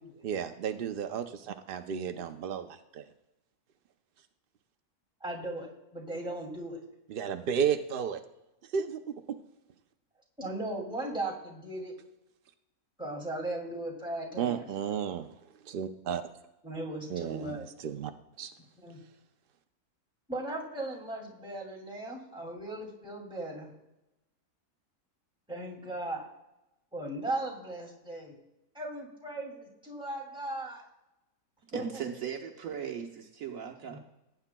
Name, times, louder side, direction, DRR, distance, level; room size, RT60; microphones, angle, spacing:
voice 1, 0.2-3.0 7.1-8.2 8.7-9.0 9.3-9.4 14.4-15.3 15.7-16.2 17.1-18.1 18.4-18.5, right 7 dB, 90° right, 0.4 m, -33 dB
voice 2, 5.2-6.8 10.4-12.0 13.0-14.6 16.6-17.7 18.8-19.0 20.3-23.7 25.5-26.3 26.9-28.4 28.7-30.8 31.7-31.8 33.9-34.0, right 1 dB, 5° right, 2.3 m, -37 dB
voice 3, 31.7-34.0, right 8 dB, 65° right, 1.2 m, -38 dB
17.5 x 9.0 x 2.2 m
omnidirectional pair, 1.6 m